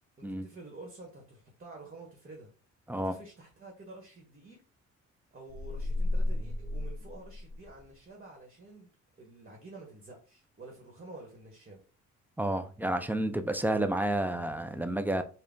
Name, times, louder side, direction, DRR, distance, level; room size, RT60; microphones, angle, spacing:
voice 1, 0.2-2.5 3.0-4.6 5.3-8.9 9.2-11.8, right 2 dB, 30° right, 1.2 m, -49 dB
sound 1, 5.5-7.9, left 2 dB, 65° right, 1.0 m, -33 dB
voice 2, 12.4-15.2, right 1 dB, 5° right, 0.3 m, -30 dB
3.6 x 2.2 x 3.7 m
cardioid pair, 90°, 30 cm